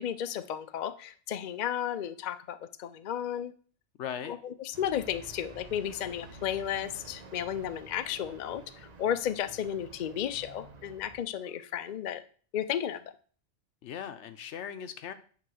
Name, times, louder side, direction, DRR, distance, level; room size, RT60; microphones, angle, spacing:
voice 1, 0.0-3.5 4.2-12.2 12.5-13.0, left 9 dB, 55° left, 11 dB, 0.5 m, -33 dB
voice 2, 4.0-4.4 13.8-15.1, left 8 dB, 75° left, 10 dB, 1.0 m, -38 dB
sound 1, 4.7-11.2, right 3 dB, 40° right, 0.9 m, -50 dB
8.7 x 3.0 x 6.2 m, 0.43 s
omnidirectional pair, 1.2 m